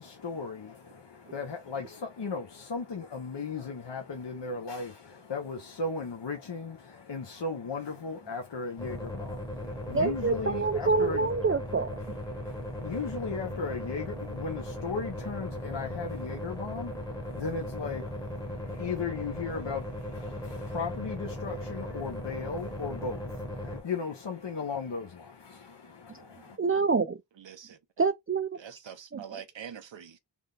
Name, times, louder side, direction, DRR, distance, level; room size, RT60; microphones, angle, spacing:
voice 1, 0.0-11.3 12.3-26.6, left 4 dB, 70° left, 0.8 m, -36 dB
sound 1, 8.8-23.8, left 1 dB, 10° left, 1.0 m, -37 dB
voice 2, 9.9-12.0 26.1-26.2 26.6-27.2 28.0-28.6 29.1-29.4, right 4 dB, 30° right, 0.4 m, -27 dB
voice 3, 27.4-27.8 28.6-30.2, right 8 dB, 80° right, 0.7 m, -44 dB
3.5 x 2.2 x 3.8 m
wide cardioid pair, 45°, 44 cm